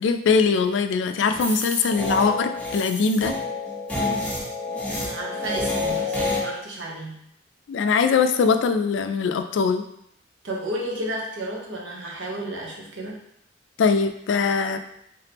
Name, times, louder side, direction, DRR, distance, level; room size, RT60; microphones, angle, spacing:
voice 1, 0.0-3.3 7.7-9.8 13.8-14.8, left 5 dB, 75° left, 8 dB, 0.3 m, -21 dB
sound 1, 1.3-6.4, left 2 dB, 5° left, 1.0 m, -28 dB
voice 2, 4.9-7.2 10.4-13.2, right 1 dB, 85° right, -2 dB, 1.0 m, -32 dB
3.6 x 3.4 x 2.9 m, 0.74 s
head